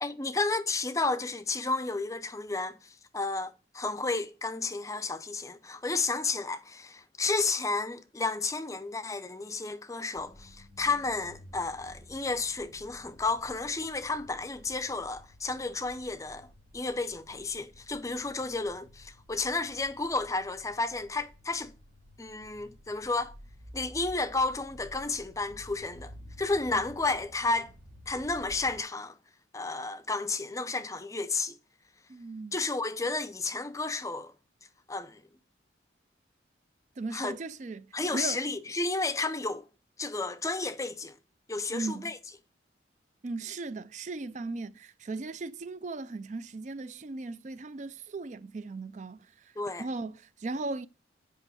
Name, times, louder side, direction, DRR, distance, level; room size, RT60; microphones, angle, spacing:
voice 1, 0.0-21.7 22.2-23.3 23.7-27.7 28.1-29.2 29.5-31.6 32.5-34.3 34.9-35.2 37.1-37.4 37.9-39.7 40.0-41.1 41.5-42.2 49.6-49.8, left 3 dB, 15° left, 0.5 m, -32 dB
sound 1, 10.1-28.8, left 1 dB, 70° right, 2.2 m, -52 dB
voice 2, 32.1-32.6 37.0-38.4 41.7-42.1 43.2-50.9, right 3 dB, 40° right, 0.4 m, -37 dB
8.3 x 5.5 x 6.7 m
head